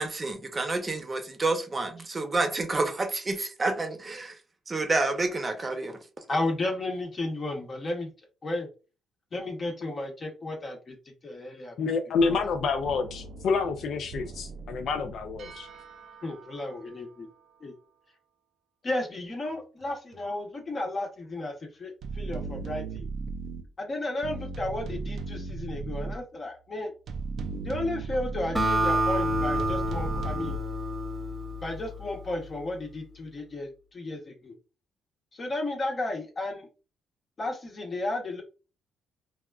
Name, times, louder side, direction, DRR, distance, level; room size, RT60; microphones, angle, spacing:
voice 1, 0.0-4.4 4.7-6.0, right 3 dB, 30° right, 0.7 m, -29 dB
voice 2, 6.3-8.1 8.4-8.7 9.3-10.9 11.2-11.8 12.2-12.5 16.2-17.3 17.6-17.7 18.8-23.1 23.8-26.9 27.6-30.6 31.6-34.5 35.3-36.7 37.4-38.4, left 2 dB, 40° left, 0.9 m, -33 dB
voice 3, 11.8-15.7, left 4 dB, 65° left, 0.4 m, -28 dB
sound 1, 12.2-17.1 19.8-19.9 20.1-20.2 22.0-23.7 24.2-26.2 27.1-28.7 29.3-30.6, right 4 dB, 65° right, 0.4 m, -37 dB
Acoustic guitar, 28.6-32.1, equal, 10° right, 1.0 m, -28 dB
3.4 x 2.3 x 2.3 m
cardioid pair, 90°, 0 cm